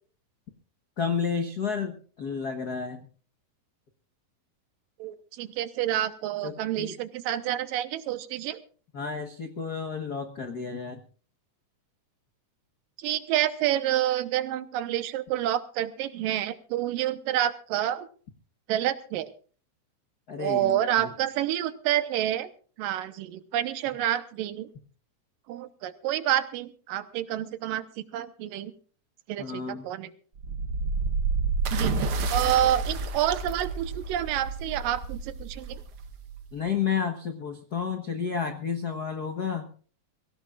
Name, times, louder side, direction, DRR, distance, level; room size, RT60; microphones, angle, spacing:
voice 1, 1.0-3.0 6.4-6.9 8.9-11.0 20.3-21.1 29.4-29.9 36.5-39.7, left 6 dB, 80° left, 6 dB, 0.8 m, -31 dB
voice 2, 5.0-8.6 13.0-18.1 18.7-19.3 20.4-22.5 22.8-24.7 25.5-28.7 29.3-30.1 31.7-32.0 32.3-35.8, right 12 dB, 85° right, 12 dB, 2.7 m, -28 dB
sound 1, 30.4-36.4, right 3 dB, 45° right, 2.0 m, -31 dB
sound 2, 31.6-34.4 35.6-35.9, right 8 dB, 65° right, 1.3 m, -35 dB
23.5 x 16.5 x 2.5 m, 0.41 s
omnidirectional pair, 3.9 m